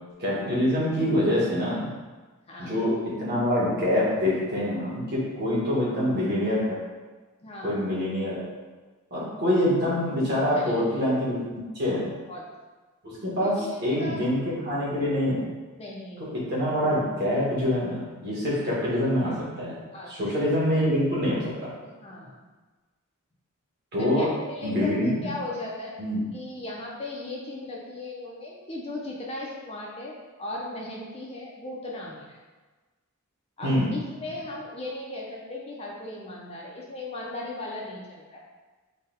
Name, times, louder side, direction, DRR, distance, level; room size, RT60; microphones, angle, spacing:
voice 1, 0.2-1.9 2.6-2.9 3.2-6.8 7.6-8.5 9.1-12.1 13.2-15.5 16.2-19.8 20.1-21.7 23.9-24.3 24.6-25.2 26.0-26.2 33.6-33.9, left 1 dB, 50° right, -7 dB, 1.3 m, -25 dB
voice 2, 2.5-2.8 5.7-6.0 7.4-7.8 10.5-11.0 11.9-12.5 13.4-14.2 15.8-16.4 18.4-18.6 19.9-20.3 22.0-22.5 24.0-26.0 26.3-32.4 33.6-38.4, left 2 dB, 30° left, -3 dB, 0.5 m, -37 dB
4.0 x 2.2 x 3.9 m, 1.3 s
head